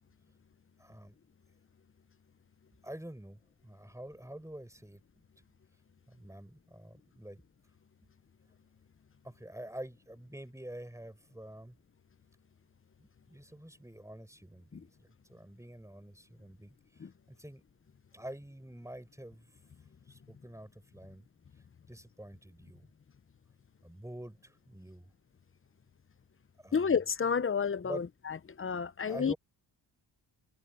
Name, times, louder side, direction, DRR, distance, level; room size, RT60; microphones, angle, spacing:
voice 1, 0.8-1.2 2.8-5.0 5.4-5.5 6.1-7.4 9.2-11.8 13.0-14.9 15.3-17.6 18.1-19.5 20.0-21.3 21.9-22.9 23.8-25.1 26.6-27.0 27.8-28.0 29.1-29.4, right 1 dB, 5° right, 5.6 m, -47 dB
voice 2, 26.7-29.3, left 6 dB, 30° left, 0.7 m, -31 dB
cardioid pair, 80°, 45 cm